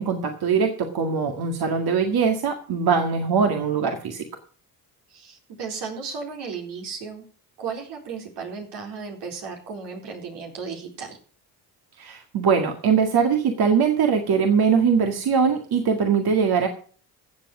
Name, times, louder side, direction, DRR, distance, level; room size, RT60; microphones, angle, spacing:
voice 1, 0.0-4.2 12.0-16.7, right 6 dB, 65° right, 4 dB, 2.0 m, -21 dB
voice 2, 5.1-7.2 7.6-11.2, right 5 dB, 85° right, 2 dB, 4.2 m, -35 dB
14.5 x 7.7 x 6.1 m, 0.43 s
supercardioid pair, 70°, 41 cm